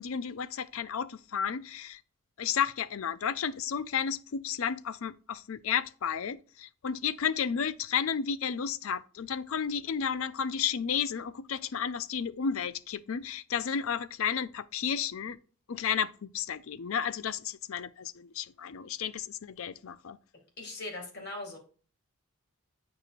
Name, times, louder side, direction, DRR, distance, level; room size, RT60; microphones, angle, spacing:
voice 1, 0.0-2.0 2.4-15.4 15.7-20.2, left 7 dB, 65° left, 0.4 m, -32 dB
voice 2, 20.6-21.6, left 2 dB, 45° left, 2.1 m, -39 dB
8.8 x 4.7 x 2.5 m
head